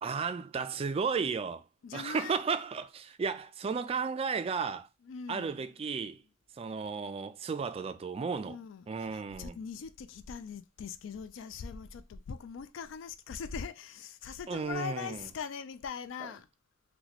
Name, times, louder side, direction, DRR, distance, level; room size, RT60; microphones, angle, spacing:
voice 1, 0.0-1.7 1.9-4.9 5.3-6.2 6.5-8.6 8.9-9.6 14.5-15.3, right 5 dB, 30° right, 0.3 m, -34 dB
voice 2, 1.8-2.4 5.0-5.7 8.4-16.5, left 6 dB, 85° left, 0.4 m, -41 dB
2.9 x 2.2 x 4.0 m
head